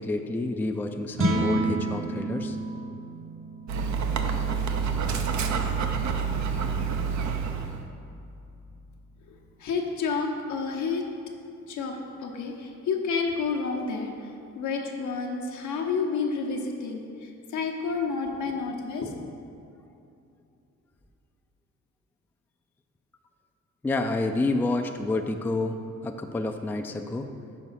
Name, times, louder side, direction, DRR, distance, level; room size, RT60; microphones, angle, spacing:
voice 1, 0.0-2.6 23.8-27.3, left 2 dB, 5° left, 5 dB, 0.3 m, -29 dB
sound 1, 1.1-7.5, right 2 dB, 45° right, 1.1 m, -32 dB
Dog, 3.7-7.8, right 6 dB, 70° right, 0.6 m, -27 dB
voice 2, 9.6-11.1 11.7-19.1, left 4 dB, 70° left, 2 dB, 0.9 m, -30 dB
6.2 x 4.8 x 5.5 m, 2.6 s
cardioid pair, 90°, 30 cm